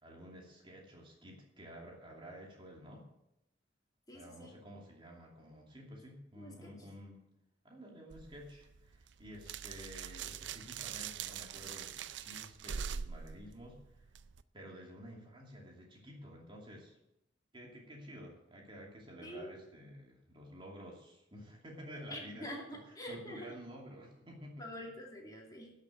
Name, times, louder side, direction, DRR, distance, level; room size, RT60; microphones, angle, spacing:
voice 1, 0.0-3.1 4.1-7.3 7.6-14.1 14.5-17.0 17.5-24.8, equal, 30° right, -1 dB, 2.7 m, -51 dB
voice 2, 4.1-4.5 6.4-6.7 19.2-19.6 22.1-23.5 24.6-25.8, left 1 dB, 20° left, -1 dB, 2.6 m, -46 dB
sound 1, 8.1-14.4, right 7 dB, 75° right, 0.5 m, -43 dB
12.5 x 6.7 x 8.3 m, 0.84 s
head